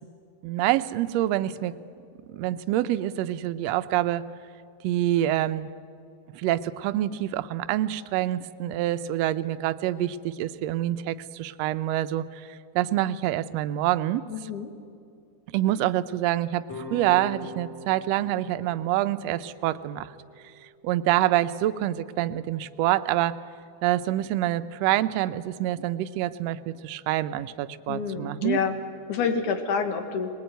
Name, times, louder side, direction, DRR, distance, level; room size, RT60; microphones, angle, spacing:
voice 1, 0.4-1.8 2.3-4.3 4.8-5.7 6.3-14.2 15.5-20.1 20.8-23.4 23.8-28.6, right 14 dB, 75° right, 11 dB, 1.6 m, -26 dB
voice 2, 14.3-14.7 27.9-28.7 29.1-30.3, left 6 dB, 80° left, 6 dB, 3.0 m, -27 dB
sound 1, 16.7-21.8, left 1 dB, 65° left, 6.3 m, -43 dB
20.5 x 20.5 x 9.2 m, 2.4 s
omnidirectional pair, 3.5 m